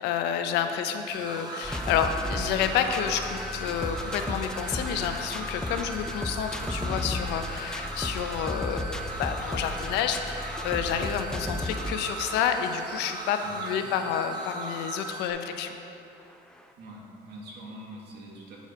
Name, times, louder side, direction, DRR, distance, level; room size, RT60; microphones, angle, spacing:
voice 1, 0.0-15.8, left 8 dB, 90° left, 7 dB, 0.5 m, -29 dB
sound 1, 1.1-15.3, right 1 dB, 25° right, 0.7 m, -39 dB
sound 2, 1.6-15.7 16.3-16.4 16.6-16.7, left 1 dB, 5° left, 0.4 m, -35 dB
voice 2, 13.4-13.9 16.8-18.6, right 1 dB, 80° right, -2 dB, 1.6 m, -44 dB
8.2 x 4.1 x 5.0 m, 2.7 s
cardioid pair, 110°, 17 cm